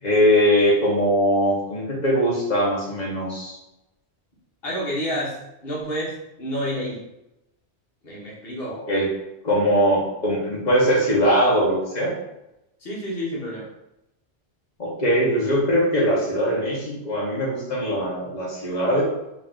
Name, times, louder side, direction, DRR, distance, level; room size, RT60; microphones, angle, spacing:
voice 1, 0.0-3.6 8.7-9.1 9.4-12.1 14.8-19.0, equal, 40° left, -4 dB, 1.2 m, -21 dB
voice 2, 4.6-7.0 8.0-8.8 12.8-13.7, equal, 55° left, -5 dB, 1.4 m, -29 dB
3.8 x 2.5 x 3.7 m, 0.90 s
omnidirectional pair, 1.2 m